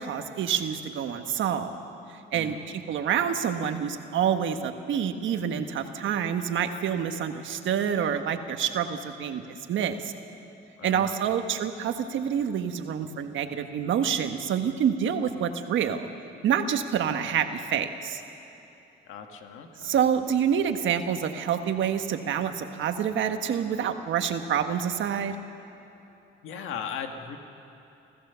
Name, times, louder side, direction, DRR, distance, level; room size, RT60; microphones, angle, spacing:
voice 1, 0.0-1.7 2.3-10.1 10.8-16.1 16.4-18.2 19.8-25.4, right 8 dB, 75° right, 7 dB, 1.4 m, -27 dB
voice 2, 2.3-2.8 10.8-11.4 19.0-20.0 26.4-27.4, left 7 dB, 90° left, 5 dB, 1.6 m, -38 dB
29.0 x 14.5 x 7.0 m, 2.9 s
cardioid pair, 90°, 20 cm